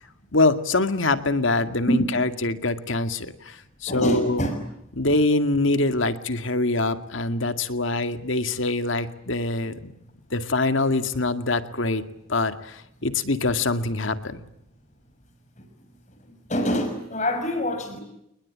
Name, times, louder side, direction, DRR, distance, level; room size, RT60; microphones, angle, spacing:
voice 1, 0.3-4.4 4.9-9.9 10.3-12.0 12.3-14.4, left 2 dB, 75° left, 9 dB, 2.1 m, -24 dB
voice 2, 3.9-4.5 16.5-18.0, equal, 35° left, 7 dB, 5.7 m, -25 dB
29.5 x 20.5 x 8.7 m, 0.80 s
head